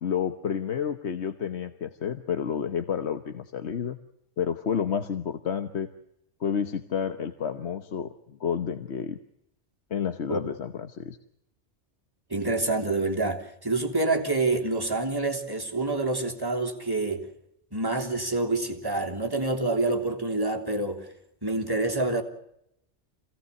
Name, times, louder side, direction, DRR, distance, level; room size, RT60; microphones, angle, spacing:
voice 1, 0.0-4.0 4.4-5.9 6.4-9.2 9.9-11.2, left 7 dB, 70° left, 9 dB, 1.4 m, -30 dB
voice 2, 12.3-17.3 17.7-21.1 21.4-22.2, right 2 dB, 20° right, 1 dB, 3.1 m, -27 dB
26.5 x 17.5 x 8.2 m, 0.80 s
omnidirectional pair, 1.2 m